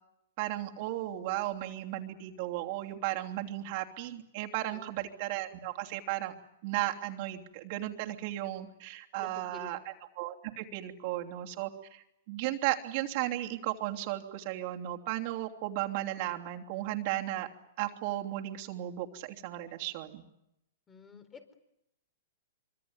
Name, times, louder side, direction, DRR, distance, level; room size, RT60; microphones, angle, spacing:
voice 1, 0.4-6.3 6.6-9.8 10.2-17.5 17.8-20.2, right 15 dB, 50° right, 3 dB, 3.0 m, -35 dB
voice 2, 9.2-9.8 20.9-21.4, left 6 dB, 20° left, 9 dB, 4.4 m, -50 dB
25.0 x 24.5 x 9.7 m, 0.83 s
hypercardioid pair, 130°, 0 cm